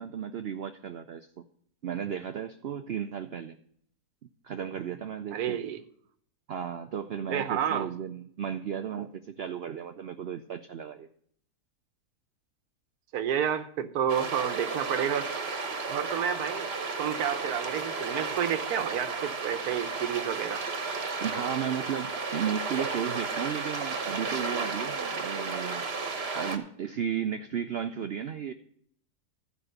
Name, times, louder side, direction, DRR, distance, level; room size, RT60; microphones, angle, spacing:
voice 1, 0.0-1.4 1.8-3.6 4.4-5.6 6.5-11.1 21.2-25.9 26.3-28.5, right 8 dB, 90° right, 8 dB, 0.5 m, -34 dB
voice 2, 5.3-5.8 7.3-7.9 13.1-15.3 15.9-16.7 17.0-20.6, right 9 dB, 70° right, 11 dB, 1.2 m, -30 dB
sound 1, 14.1-26.6, right 4 dB, 45° right, 1.2 m, -33 dB
12.5 x 5.3 x 6.5 m, 0.63 s
omnidirectional pair, 1.8 m